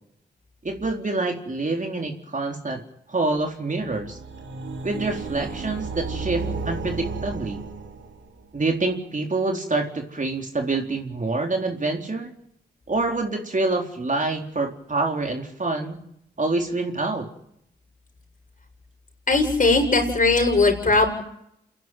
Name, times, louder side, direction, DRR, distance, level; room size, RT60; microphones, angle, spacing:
voice 1, 0.6-2.8 3.1-4.2 4.8-7.6 8.5-12.3 12.9-16.0 16.4-17.3, right 3 dB, 40° right, 2 dB, 4.1 m, -26 dB
sound 1, 3.8-8.5, right 4 dB, 80° right, 2.4 m, -33 dB
voice 2, 19.3-21.1, left 3 dB, 45° left, 2 dB, 7.3 m, -19 dB
28.0 x 11.0 x 9.3 m, 0.75 s
cardioid pair, 45°, 19 cm